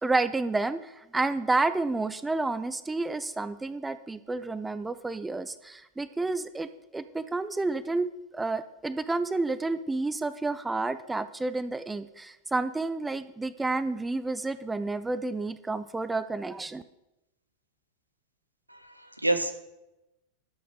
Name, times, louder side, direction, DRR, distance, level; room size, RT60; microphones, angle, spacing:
voice 1, 0.0-16.8, right 3 dB, 10° right, 13 dB, 0.6 m, -30 dB
voice 2, 18.7-19.5, right 2 dB, 85° right, 7 dB, 1.2 m, -28 dB
12.0 x 7.9 x 6.5 m, 0.92 s
figure-of-eight pair, 90°, 0 cm